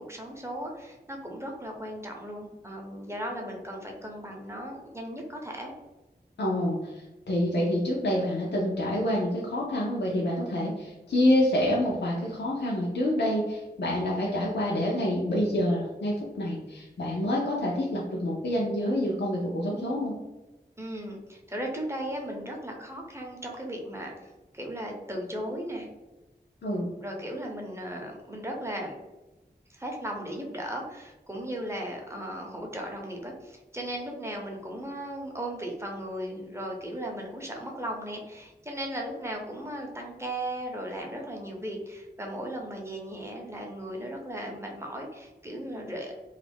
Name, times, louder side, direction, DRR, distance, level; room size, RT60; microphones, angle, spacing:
voice 1, 0.0-5.7 20.8-25.9 27.0-29.0 29.7-46.1, right 1 dB, 15° right, 0 dB, 0.6 m, -36 dB
voice 2, 6.4-20.1 26.6-26.9, left 1 dB, 85° left, -4 dB, 0.5 m, -27 dB
2.3 x 2.0 x 3.3 m, 1.1 s
wide cardioid pair, 50°, 17 cm